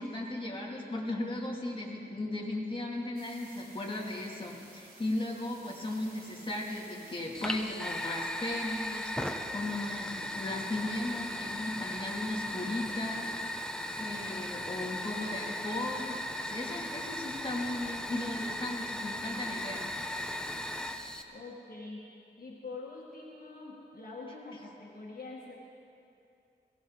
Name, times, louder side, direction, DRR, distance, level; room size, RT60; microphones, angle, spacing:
voice 1, 0.0-13.3 13.6-13.7 14.0-16.2 16.4-19.8, left 2 dB, 30° left, -3 dB, 2.8 m, -36 dB
sound 1, 3.1-7.6, right 2 dB, 65° right, 4.7 m, -55 dB
Fire, 7.3-21.2, left 1 dB, 5° left, 1.0 m, -37 dB
voice 2, 21.3-22.0 22.4-25.5, left 3 dB, 55° left, -3 dB, 2.0 m, -44 dB
21.5 x 16.5 x 4.1 m, 2.6 s
wide cardioid pair, 75°, 18 cm